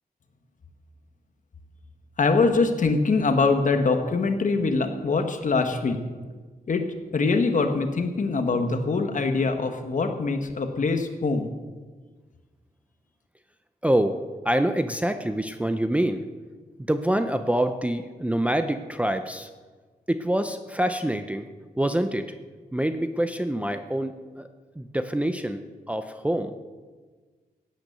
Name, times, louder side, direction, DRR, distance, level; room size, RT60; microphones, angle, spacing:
voice 1, 2.2-6.0 6.7-6.8 7.1-11.5, left 4 dB, 55° left, 6 dB, 1.4 m, -23 dB
voice 2, 13.8-16.3 16.9-19.5 20.1-21.5 21.8-22.3 22.7-24.5 24.8-26.6, right 1 dB, 10° right, 7 dB, 0.5 m, -26 dB
16.5 x 9.2 x 6.7 m, 1.4 s
wide cardioid pair, 170°, 16 cm